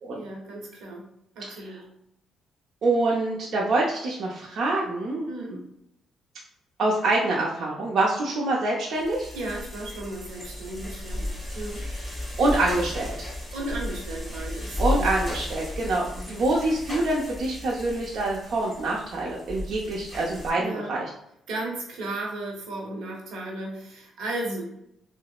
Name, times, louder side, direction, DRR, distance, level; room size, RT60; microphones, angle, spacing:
voice 1, 0.1-1.0 1.3-1.8 5.3-5.6 9.3-11.3 11.5-11.8 13.5-15.2 16.3-16.4 20.5-20.9 21.5-24.6, right 2 dB, 85° right, -1 dB, 1.0 m, -35 dB
voice 2, 2.8-5.6 6.8-9.3 12.4-13.1 14.8-21.1, right 2 dB, 65° right, -4 dB, 0.6 m, -25 dB
sound 1, 8.9-20.5, left 1 dB, ahead, 1.4 m, -34 dB
4.8 x 2.0 x 2.4 m, 0.79 s
cardioid pair, 90°, 0 cm